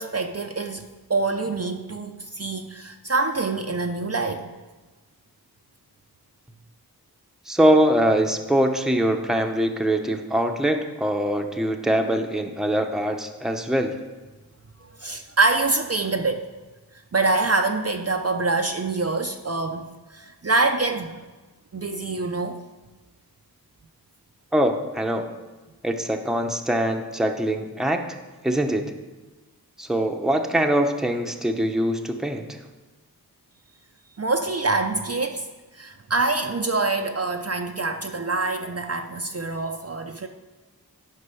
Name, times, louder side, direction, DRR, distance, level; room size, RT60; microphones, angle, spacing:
voice 1, 0.0-4.5 15.0-16.5 17.1-21.3 21.7-22.6 34.2-35.5 35.7-40.3, right 3 dB, 40° right, 4 dB, 0.6 m, -25 dB
voice 2, 7.5-14.0 24.5-25.2 25.8-28.0 28.4-28.9 29.8-32.6, right 1 dB, ahead, 4 dB, 0.8 m, -23 dB
9.9 x 5.4 x 5.5 m, 1.3 s
wide cardioid pair, 50°, 37 cm